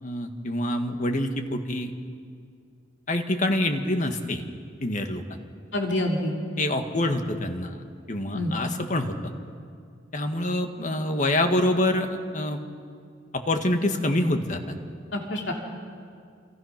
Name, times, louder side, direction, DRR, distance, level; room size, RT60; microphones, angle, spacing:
voice 1, 0.0-1.9 3.1-4.4 4.8-5.4 6.6-7.8 8.1-9.2 10.1-12.6 13.3-14.7, left 1 dB, 45° left, 6 dB, 1.8 m, -26 dB
voice 2, 5.7-6.3 8.3-8.5 15.1-15.5, left 1 dB, 80° left, 1 dB, 2.9 m, -27 dB
29.0 x 27.5 x 6.0 m, 2.3 s
head